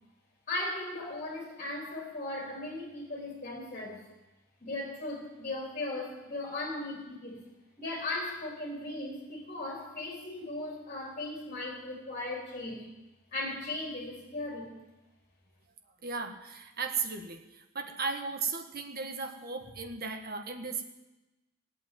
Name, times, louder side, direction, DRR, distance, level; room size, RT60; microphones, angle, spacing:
voice 1, 0.5-4.0 4.6-7.4 7.8-12.8 13.3-14.8, left 2 dB, 35° left, -1 dB, 3.9 m, -37 dB
voice 2, 16.0-20.8, right 5 dB, 45° right, 5 dB, 1.5 m, -36 dB
16.5 x 8.6 x 9.3 m, 1.0 s
head